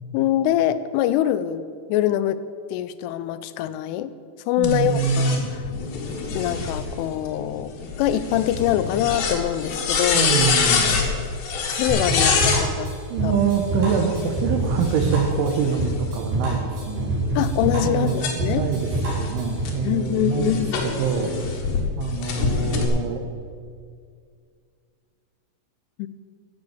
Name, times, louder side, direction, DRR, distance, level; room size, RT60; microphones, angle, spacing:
voice 1, 0.1-2.4 2.7-4.1 4.5-5.6 6.3-7.7 8.0-10.4 11.7-12.9 13.2-13.3 17.4-18.7 19.8-20.8 26.0-26.1, left 12 dB, 90° left, 14 dB, 3.1 m, -24 dB
sound 1, 4.6-12.6 13.8-16.2 16.7-21.8 22.2-22.9, left 5 dB, 65° left, 3.6 m, -26 dB
voice 2, 4.6-5.5 10.1-11.0 13.1-17.1 17.8-18.9 19.2-21.3 22.0-23.2, right 6 dB, 80° right, 6 dB, 3.5 m, -25 dB
sound 2, 11.9-19.8, right 2 dB, 45° right, 5.3 m, -26 dB
15.0 x 8.0 x 7.0 m, 2.2 s
omnidirectional pair, 5.6 m